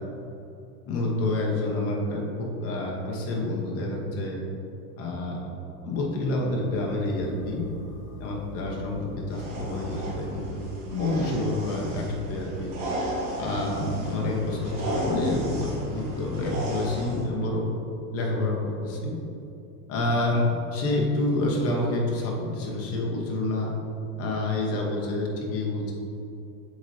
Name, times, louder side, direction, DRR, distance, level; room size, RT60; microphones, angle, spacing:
voice 1, 0.9-4.4 5.0-5.4 5.8-7.7 8.2-12.7 13.4-17.7 18.1-19.2 19.9-20.4 20.7-23.7 24.2-25.9, left 2 dB, 30° left, -1 dB, 1.1 m, -28 dB
sound 1, 6.1-16.1, left 4 dB, 60° left, 1.1 m, -47 dB
sound 2, 9.3-17.2, right 1 dB, 45° right, 1.3 m, -34 dB
7.8 x 4.2 x 3.3 m, 2.8 s
supercardioid pair, 155°, 45 cm